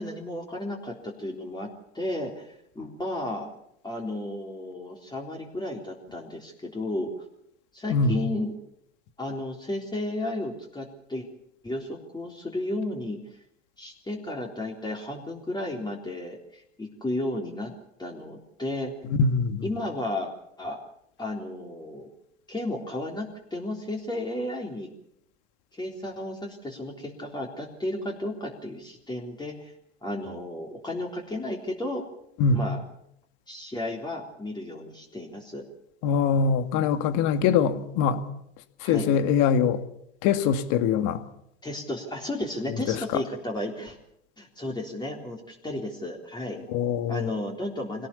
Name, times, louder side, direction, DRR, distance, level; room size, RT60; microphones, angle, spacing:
voice 1, 0.0-1.7 1.9-3.5 3.8-7.1 7.7-8.5 9.2-11.3 11.6-13.4 13.8-17.7 18.0-18.9 19.6-20.3 20.6-20.8 21.2-22.1 22.5-24.9 25.7-29.7 30.0-32.0 32.5-32.8 33.5-35.7 38.8-39.1 41.6-44.0 44.4-46.6 47.1-48.1, left 1 dB, 10° left, -1 dB, 3.7 m, -33 dB
voice 2, 19.2-19.6 32.4-32.6 36.0-38.2 38.9-39.8 40.2-41.2 46.7-47.2, left 6 dB, 50° left, 9 dB, 2.3 m, -23 dB
24.5 x 18.0 x 7.1 m, 0.74 s
hypercardioid pair, 110°, 38 cm